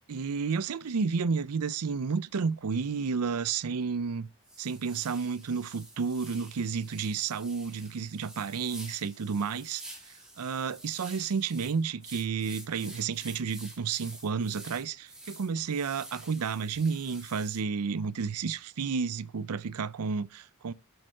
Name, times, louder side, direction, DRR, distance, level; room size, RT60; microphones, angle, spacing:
voice 1, 0.1-4.3 4.6-9.8 10.4-20.7, right 5 dB, 80° right, 0.5 m, -31 dB
sound 1, 3.9-4.0 4.4-17.6, right 1 dB, 5° right, 2.8 m, -49 dB
7.9 x 6.4 x 7.5 m
head